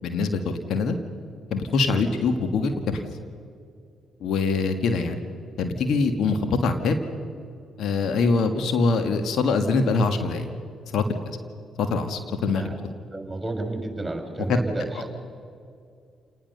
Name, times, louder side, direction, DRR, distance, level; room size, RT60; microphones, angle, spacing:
voice 1, 0.0-0.9 1.5-3.0 4.2-5.2 5.6-7.0 7.8-10.5 10.9-11.0 11.8-12.7, left 4 dB, 65° left, 7 dB, 1.7 m, -23 dB
voice 2, 12.4-12.8 13.1-15.1, right 2 dB, 15° right, 4 dB, 6.1 m, -31 dB
28.5 x 19.5 x 6.8 m, 2.4 s
hypercardioid pair, 45°, 0 cm